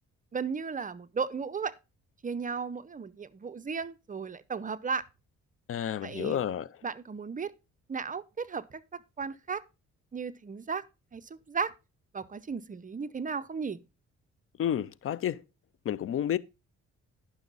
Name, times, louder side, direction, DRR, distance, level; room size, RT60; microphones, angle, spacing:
voice 1, 0.3-1.7 2.2-5.1 6.0-6.4 6.8-7.5 7.9-9.6 10.1-10.8 11.1-11.7 12.1-13.8, right 5 dB, 25° right, 0.6 m, -35 dB
voice 2, 5.7-6.7 14.6-15.4 15.9-16.4, left 10 dB, 45° left, 0.4 m, -30 dB
10.5 x 6.1 x 3.9 m
cardioid pair, 90°, 30 cm